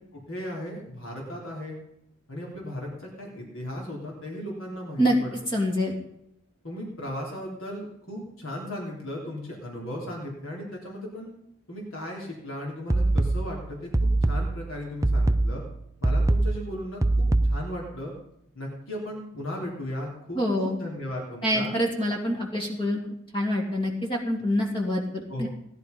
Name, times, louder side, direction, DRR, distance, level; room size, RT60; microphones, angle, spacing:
voice 1, 0.1-1.8 2.3-5.4 6.6-11.3 11.7-15.6 16.0-18.1 18.6-21.7 25.3-25.5, left 1 dB, 70° left, -2 dB, 3.7 m, -36 dB
voice 2, 5.5-6.0 20.3-20.8 21.4-23.0 23.3-25.5, equal, 25° left, -1 dB, 2.7 m, -26 dB
sound 1, 12.9-17.9, right 2 dB, 15° right, 0.6 m, -24 dB
18.0 x 11.5 x 5.3 m, 0.81 s
head